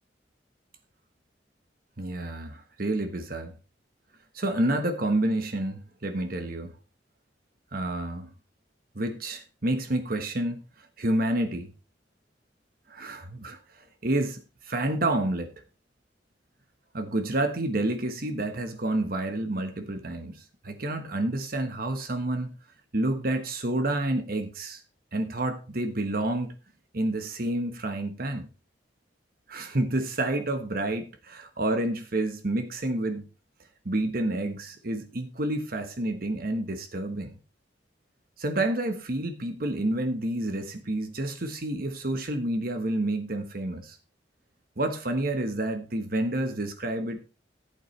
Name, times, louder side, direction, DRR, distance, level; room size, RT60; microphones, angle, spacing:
voice 1, 2.0-3.6 4.3-6.7 7.7-8.3 8.9-10.6 11.0-11.7 12.9-15.5 16.9-22.5 22.9-24.8 25.1-26.5 26.9-28.5 29.5-33.3 33.8-37.4 38.4-44.0 44.8-47.3, right 1 dB, 55° right, 1.3 m, -29 dB
15.0 x 8.6 x 3.2 m
head